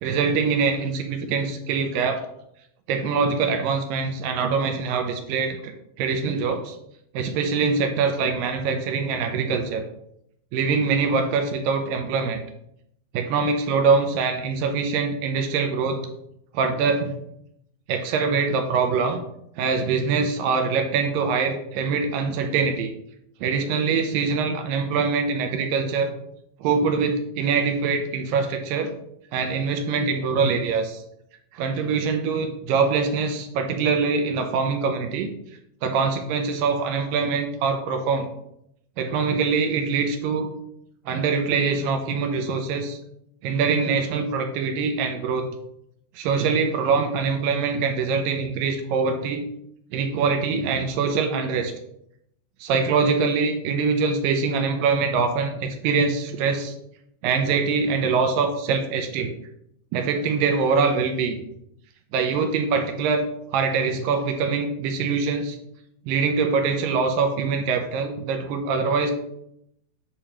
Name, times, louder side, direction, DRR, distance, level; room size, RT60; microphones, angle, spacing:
voice 1, 0.0-2.2 2.9-5.7 6.0-6.8 7.1-9.8 10.5-12.4 13.1-16.0 16.5-17.1 17.9-19.2 19.6-22.9 23.4-26.1 26.6-28.9 29.3-31.0 31.5-35.3 35.8-38.3 39.0-40.5 41.1-43.0 43.4-45.5 46.2-49.5 49.9-51.7 52.6-56.7 57.2-59.3 59.9-61.4 62.1-63.3 63.5-65.6 66.1-69.1, right 5 dB, 80° right, 5 dB, 2.2 m, -23 dB
8.5 x 2.9 x 5.0 m, 0.77 s
omnidirectional pair, 4.4 m